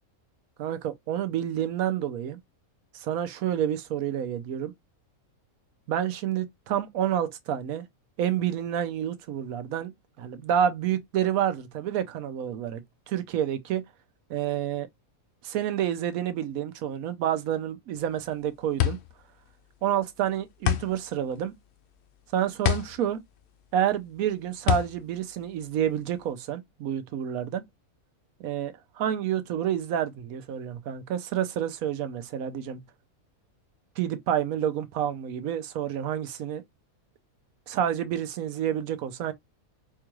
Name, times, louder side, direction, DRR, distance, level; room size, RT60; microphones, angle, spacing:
voice 1, 0.6-2.4 2.9-4.7 5.9-7.8 8.2-9.9 10.2-12.8 13.1-13.8 14.3-14.9 15.4-19.0 19.8-21.5 22.3-23.2 23.7-27.6 28.4-32.8 34.0-36.6 37.7-39.3, right 10 dB, 85° right, 1.1 m, -29 dB
sound 1, 18.0-26.3, left 12 dB, 65° left, 0.7 m, -30 dB
4.4 x 2.4 x 3.0 m
omnidirectional pair, 1.5 m